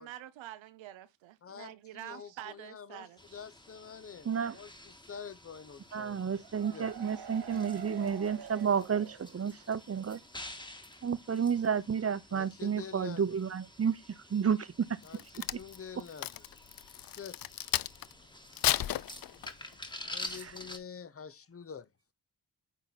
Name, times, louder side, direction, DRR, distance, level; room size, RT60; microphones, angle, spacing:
voice 1, 0.0-3.4, right 13 dB, 85° right, 0.8 m, -47 dB
voice 2, 1.4-6.4 6.7-6.9 12.3-13.4 15.0-16.6 17.1-17.5 20.0-21.9, left 7 dB, 30° left, 0.8 m, -47 dB
sound 1, 3.2-20.8, left 1 dB, 10° left, 1.7 m, -49 dB
voice 3, 4.2-4.6 5.9-10.2 11.0-15.0 20.2-20.5, right 7 dB, 30° right, 0.8 m, -31 dB
sound 2, 6.2-9.8 10.1-10.2 10.5-10.6, right 8 dB, 60° right, 1.3 m, -47 dB
Crack, 15.0-18.1 18.5-19.7 20.3-20.5, left 13 dB, 50° left, 0.5 m, -33 dB
9.0 x 4.0 x 4.1 m
supercardioid pair, 50°, 45 cm